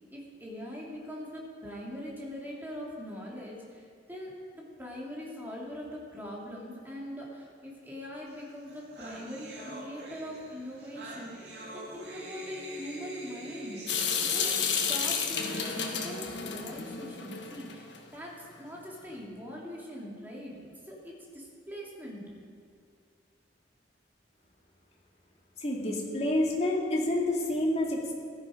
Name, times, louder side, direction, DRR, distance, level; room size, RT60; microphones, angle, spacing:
voice 1, 0.1-13.8 14.2-22.2, equal, 10° right, -4 dB, 2.8 m, -42 dB
sound 1, 8.4-8.5 8.7-16.3, right 1 dB, 65° right, 2.4 m, -44 dB
Water tap faucet / Sink (filling or washing) / Drip, 13.9-18.0, left 6 dB, 70° left, 1.3 m, -31 dB
voice 2, 25.6-28.1, left 1 dB, 35° left, -2 dB, 2.4 m, -28 dB
16.5 x 12.5 x 5.1 m, 2.1 s
head